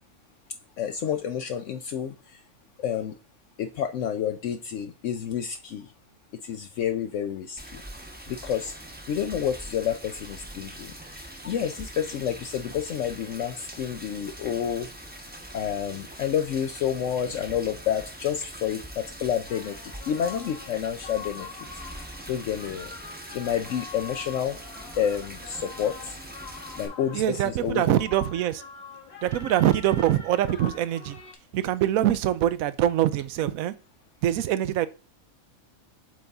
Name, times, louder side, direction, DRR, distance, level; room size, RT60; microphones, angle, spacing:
voice 1, 0.8-2.1 2.8-3.1 3.6-5.9 6.4-7.8 8.3-8.7 9.1-14.9 15.5-19.7 20.1-21.5 22.3-22.9 23.3-24.6 24.9-26.1 26.8-27.9, left 9 dB, 70° left, 0.8 m, -29 dB
Rain, 7.6-26.9, right 1 dB, 10° right, 0.8 m, -43 dB
sound 1, 19.5-31.3, left 5 dB, 50° left, 1.4 m, -44 dB
voice 2, 27.1-28.6 29.2-31.2 31.5-33.7 34.2-34.9, right 12 dB, 80° right, 1.0 m, -24 dB
7.8 x 4.0 x 3.5 m
omnidirectional pair, 1.5 m